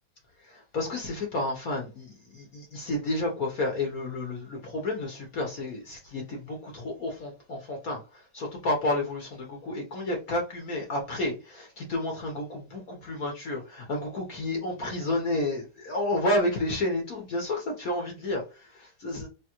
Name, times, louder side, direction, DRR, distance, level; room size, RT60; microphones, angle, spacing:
voice 1, 0.5-19.3, left 1 dB, 55° left, 1.2 m, -31 dB
3.5 x 3.3 x 2.9 m
omnidirectional pair, 2.1 m